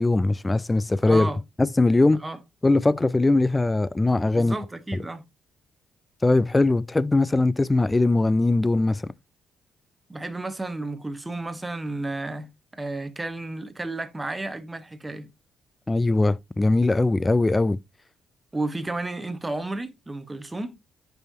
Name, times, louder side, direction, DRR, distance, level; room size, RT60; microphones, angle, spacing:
voice 1, 0.0-1.3 1.6-2.2 2.6-4.6 6.2-9.1 15.9-17.8, left 2 dB, 15° left, 0.4 m, -21 dB
voice 2, 1.0-1.4 2.2-2.4 4.3-5.2 10.1-15.3 18.5-20.8, right 2 dB, 15° right, 1.2 m, -32 dB
9.5 x 5.5 x 2.8 m
cardioid pair, 90°, 0 cm